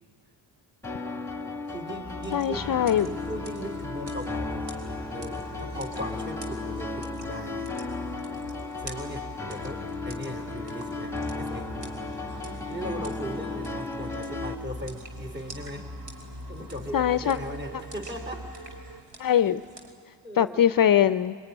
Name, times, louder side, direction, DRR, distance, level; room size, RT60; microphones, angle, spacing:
sound 1, 0.8-14.5, left 3 dB, 5° left, 1.6 m, -35 dB
voice 1, 1.7-2.6 3.0-4.8 5.1-7.7 8.8-11.7 12.7-16.1 16.5-18.5 20.2-20.7, equal, 20° right, 4 dB, 3.8 m, -38 dB
sound 2, 2.0-19.0, equal, 40° right, 3.4 m, -42 dB
sound 3, 2.2-19.9, right 2 dB, 60° right, 3.9 m, -50 dB
voice 2, 2.3-3.1 16.9-17.4 19.2-19.6 20.4-21.3, left 9 dB, 45° left, 13 dB, 0.6 m, -22 dB
23.0 x 22.0 x 9.9 m, 2.1 s
cardioid pair, 75°, 47 cm